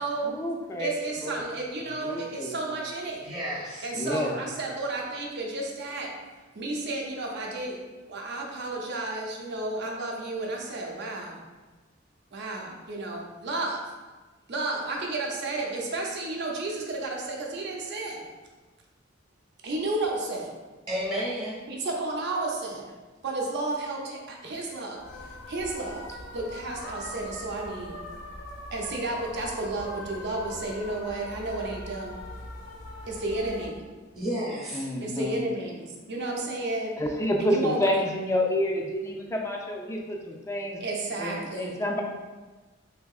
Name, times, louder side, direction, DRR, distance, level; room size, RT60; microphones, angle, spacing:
voice 1, 0.2-0.9 1.2-1.4 2.0-2.6 3.9-4.3 34.7-35.4 37.0-40.8 41.2-42.0, left 1 dB, 15° left, 0 dB, 0.3 m, -29 dB
voice 2, 0.8-3.2 3.8-6.1 6.5-7.8 8.1-11.4 12.3-13.8 14.5-18.3 19.6-20.5 21.7-22.8 23.2-28.0 28.7-32.2 33.1-33.9 35.0-36.9 37.4-37.8 40.8-41.8, right 2 dB, 60° right, -1 dB, 0.6 m, -32 dB
voice 3, 3.2-3.9 20.9-21.5 34.1-34.8, equal, 25° right, -8 dB, 0.7 m, -31 dB
sound 1, 25.0-33.7, left 1 dB, 65° left, 0.5 m, -42 dB
3.4 x 2.8 x 2.3 m, 1.3 s
head